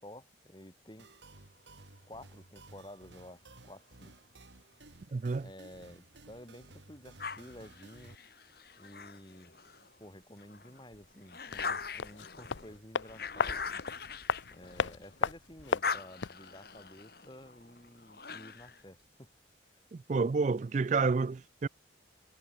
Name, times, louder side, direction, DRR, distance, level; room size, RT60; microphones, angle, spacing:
voice 1, 0.0-1.1 2.1-4.2 5.4-8.2 8.8-9.6 10.0-13.9 14.5-19.3 19.7-19.8, left 1 dB, 25° left, 4.8 m, -52 dB
sound 1, 1.0-8.2, right 2 dB, 70° right, 2.2 m, -56 dB
voice 2, 5.1-5.5 19.9-21.7, right 4 dB, 40° right, 0.3 m, -29 dB
sound 2, 7.2-9.9 10.4-15.2 15.5-18.8, left 5 dB, 55° left, 2.4 m, -41 dB
sound 3, 11.5-16.5 16.7-16.8, left 5 dB, 75° left, 0.6 m, -36 dB
head